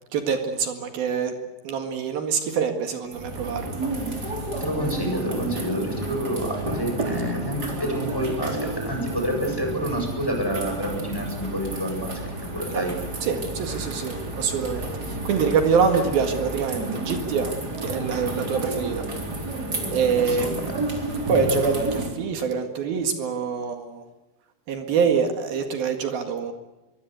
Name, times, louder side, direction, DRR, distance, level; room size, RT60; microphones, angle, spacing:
voice 1, 0.1-1.4 1.6-4.4 12.7-12.9 13.2-17.5 17.8-19.1 19.4-19.6 19.9-20.5 21.3-24.0 24.7-26.5, right 6 dB, 75° right, 5 dB, 3.7 m, -25 dB
sound 1, 3.1-22.1, right 2 dB, 25° right, 4.1 m, -31 dB
voice 2, 4.6-12.2 12.5-12.9 20.3-20.7, equal, 5° left, 2 dB, 7.3 m, -28 dB
24.5 x 23.5 x 8.2 m, 1.1 s
omnidirectional pair, 4.4 m